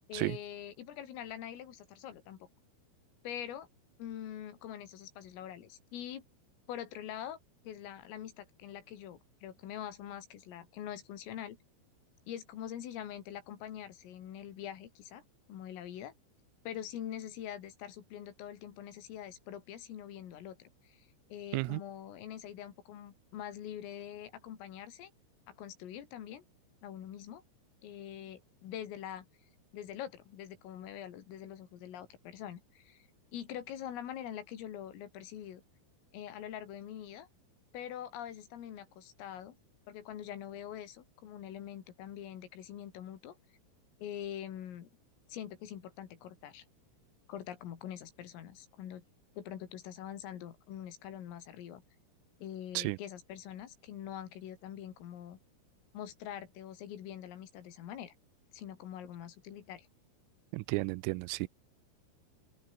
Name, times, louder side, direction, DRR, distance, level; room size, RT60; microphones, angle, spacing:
voice 1, 0.1-2.4 3.2-3.7 4.0-6.2 6.7-7.4 7.7-11.6 12.3-15.2 15.5-16.1 16.7-25.1 25.5-26.4 26.8-27.4 27.8-29.3 29.7-35.6 36.1-37.3 37.7-39.6 39.9-43.4 44.0-44.9 45.3-46.7 47.3-49.0 49.4-51.8 52.4-55.4 55.9-58.1 58.5-59.9, left 10 dB, 80° left, 5.4 m, -44 dB
voice 2, 60.5-61.5, right 24 dB, 85° right, 3.2 m, -33 dB
open air
omnidirectional pair, 5.8 m